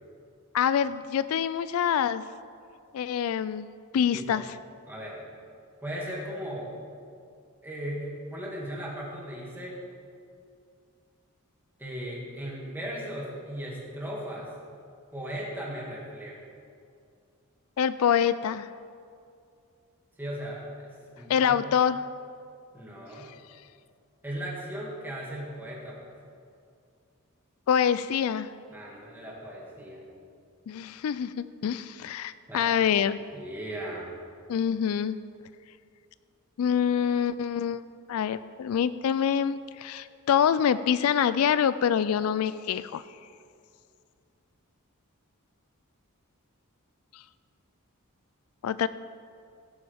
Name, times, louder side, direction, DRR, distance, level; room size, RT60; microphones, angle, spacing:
voice 1, 0.5-2.2 2.9-3.7 3.9-4.6 17.8-18.7 21.3-22.0 27.7-28.5 30.7-33.2 34.5-35.2 36.6-37.8 38.1-43.0 48.6-48.9, left 8 dB, 70° left, 15 dB, 0.3 m, -25 dB
voice 2, 4.1-4.4 4.9-5.2 5.8-6.7 7.6-9.8 11.8-14.5 15.1-16.4 20.2-21.6 22.7-23.3 24.2-26.0 28.7-30.1 32.5-33.1 33.3-34.2, equal, 10° right, -5 dB, 2.3 m, -37 dB
16.5 x 8.7 x 3.6 m, 2.4 s
head